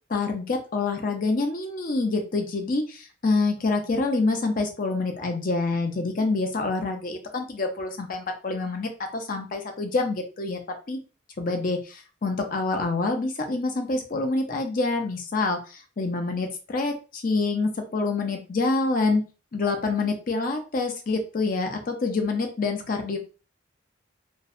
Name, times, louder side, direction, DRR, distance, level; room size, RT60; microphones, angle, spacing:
voice 1, 0.1-10.6 10.9-11.0 11.4-19.2 19.5-23.2, left 3 dB, 45° left, 4 dB, 0.5 m, -26 dB
2.5 x 2.0 x 2.4 m, 0.33 s
head